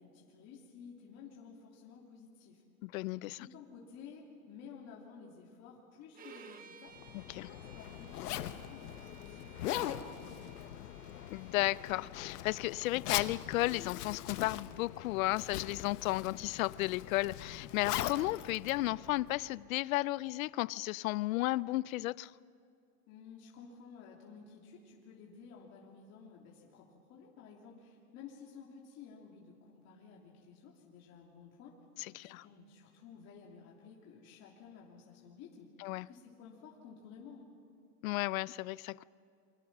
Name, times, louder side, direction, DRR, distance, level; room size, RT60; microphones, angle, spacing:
voice 1, 0.0-2.6 3.2-6.9 7.3-10.9 23.1-31.8 32.1-35.7 36.0-37.5, left 6 dB, 35° left, -3 dB, 3.1 m, -54 dB
voice 2, 2.8-3.4 7.3-7.5 11.3-22.3 32.1-32.4 35.8-36.1 38.0-39.0, left 19 dB, 65° left, 21 dB, 0.6 m, -34 dB
Bowed string instrument, 6.1-12.1, right 6 dB, 20° right, 1.3 m, -57 dB
Zipper (clothing), 6.9-19.6, left 12 dB, 85° left, 1.2 m, -41 dB
29.0 x 24.5 x 6.1 m, 2.5 s
supercardioid pair, 150°, 44 cm